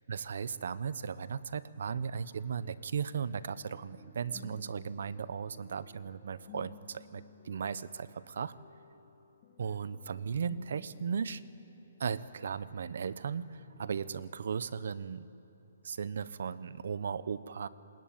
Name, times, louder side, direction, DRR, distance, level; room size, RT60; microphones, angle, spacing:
voice 1, 0.1-8.5 9.6-11.4 12.0-15.3 15.8-17.7, right 6 dB, 65° right, 16 dB, 1.0 m, -36 dB
sound 1, 3.0-13.1 13.4-14.2, left 5 dB, 30° left, 1.9 m, -57 dB
27.0 x 21.0 x 9.1 m, 3.0 s
hypercardioid pair, 160°, 0 cm